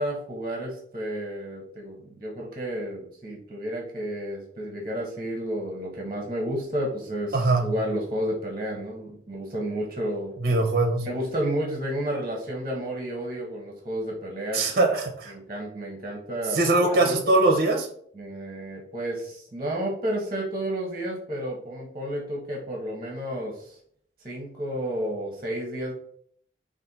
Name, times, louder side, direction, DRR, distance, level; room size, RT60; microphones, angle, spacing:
voice 1, 0.0-10.3 11.0-14.6 15.3-17.2 18.1-23.8 24.2-25.9, right 1 dB, 25° right, -2 dB, 0.9 m, -31 dB
voice 2, 7.3-7.7 10.4-11.1 14.5-15.3 16.5-17.9, right 2 dB, 50° right, 2 dB, 0.6 m, -21 dB
4.3 x 2.5 x 3.9 m, 0.63 s
head